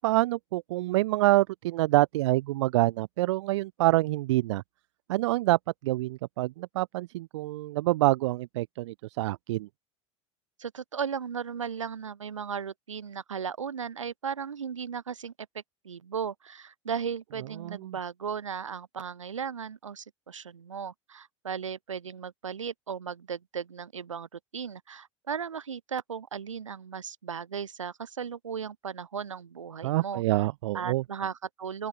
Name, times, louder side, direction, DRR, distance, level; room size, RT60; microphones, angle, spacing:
voice 1, 0.0-4.6 5.1-5.6 5.8-9.7 17.6-17.9 29.8-31.0, right 17 dB, 70° right, 0.6 m, -26 dB
voice 2, 10.6-15.3 15.8-30.5 30.7-31.9, right 7 dB, 85° right, 2.6 m, -36 dB
open air
hypercardioid pair, 75°, 16 cm